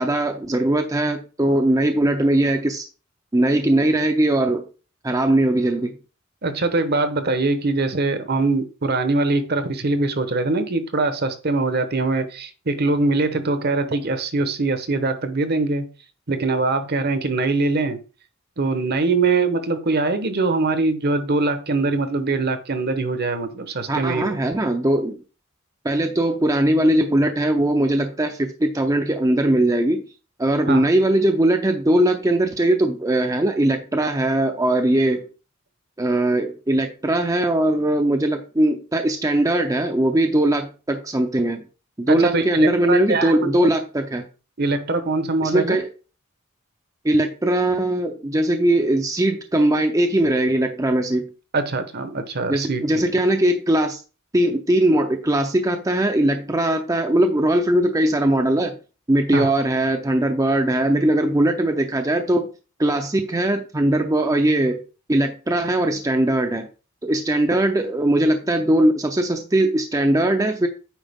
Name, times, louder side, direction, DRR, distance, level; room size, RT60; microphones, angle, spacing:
voice 1, 0.0-2.8 3.3-4.6 5.0-5.9 23.9-25.2 25.8-30.0 30.4-35.3 36.0-41.6 42.0-44.2 45.4-45.9 47.0-51.3 52.5-54.0 54.3-58.8 59.1-62.5 62.8-64.8 65.1-66.7 67.0-70.7, right 1 dB, 15° right, 5 dB, 0.6 m, -20 dB
voice 2, 6.4-15.9 16.3-18.0 18.6-24.5 30.7-30.9 42.1-43.5 44.6-45.8 51.5-53.0 59.3-59.5, right 3 dB, 50° right, 10 dB, 0.9 m, -22 dB
9.1 x 4.8 x 3.6 m, 0.35 s
head